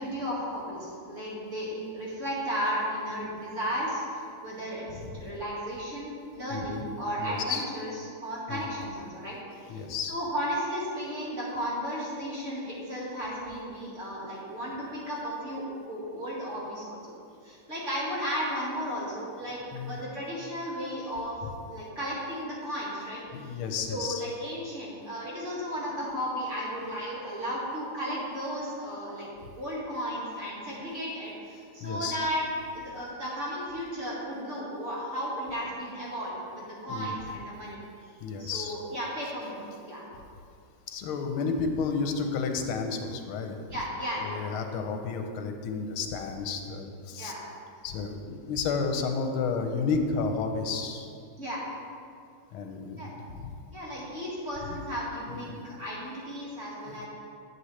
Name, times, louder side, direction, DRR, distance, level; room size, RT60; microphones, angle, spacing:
voice 1, 0.0-7.9 8.2-9.8 10.1-17.1 17.4-19.6 19.9-21.4 21.7-29.3 29.5-32.4 32.7-37.8 38.1-40.1 43.7-44.4 47.2-47.5 51.4-51.6 53.0-53.1 53.7-57.1, equal, 35° right, -6 dB, 2.2 m, -34 dB
voice 2, 6.5-6.9 7.2-7.6 8.5-8.6 9.7-10.1 19.7-20.0 23.3-24.2 31.8-32.2 36.9-37.1 38.2-38.7 40.9-43.6 44.2-47.3 47.8-51.1 52.5-53.5 55.3-55.8 56.9-57.1, left 5 dB, 85° left, 5 dB, 1.6 m, -32 dB
11.0 x 7.5 x 3.2 m, 2.4 s
omnidirectional pair, 2.3 m